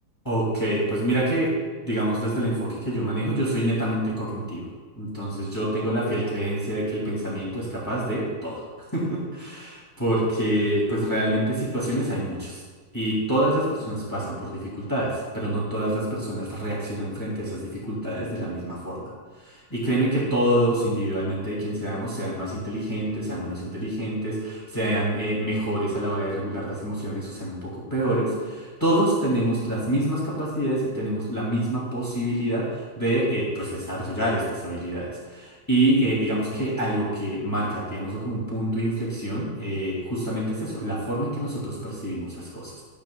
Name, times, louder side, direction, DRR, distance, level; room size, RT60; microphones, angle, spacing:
voice 1, 0.2-1.5 1.8-4.7 4.9-12.6 12.9-19.1 19.4-42.8, right 1 dB, 10° left, -6 dB, 2.5 m, -26 dB
12.5 x 12.5 x 2.3 m, 1.4 s
omnidirectional pair, 2.0 m